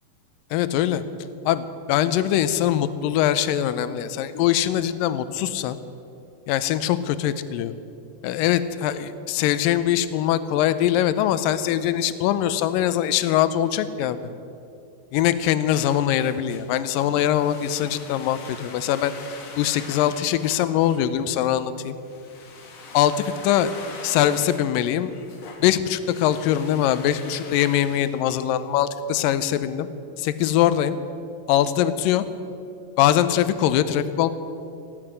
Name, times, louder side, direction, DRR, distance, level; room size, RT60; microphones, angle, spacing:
voice 1, 0.5-1.0 1.5-5.8 6.5-7.7 8.2-14.2 15.1-19.1 19.6-22.0 22.9-23.2 23.4-23.7 24.0-25.1 25.6-29.9 30.2-31.0 31.5-32.2 33.0-34.3, left 11 dB, 80° left, 13 dB, 2.3 m, -22 dB
sound 1, 15.7-28.7, left 4 dB, 55° left, 2.5 m, -44 dB
17.0 x 8.0 x 10.0 m, 2.6 s
omnidirectional pair, 4.1 m